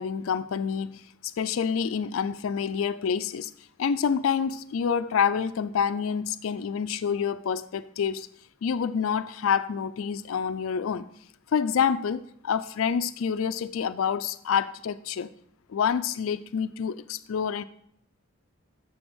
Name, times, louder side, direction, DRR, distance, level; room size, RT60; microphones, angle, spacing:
voice 1, 0.0-3.5 3.8-8.3 8.6-11.1 11.5-15.3 15.7-17.6, left 7 dB, 70° left, 0.4 m, -27 dB
7.1 x 6.1 x 6.2 m
head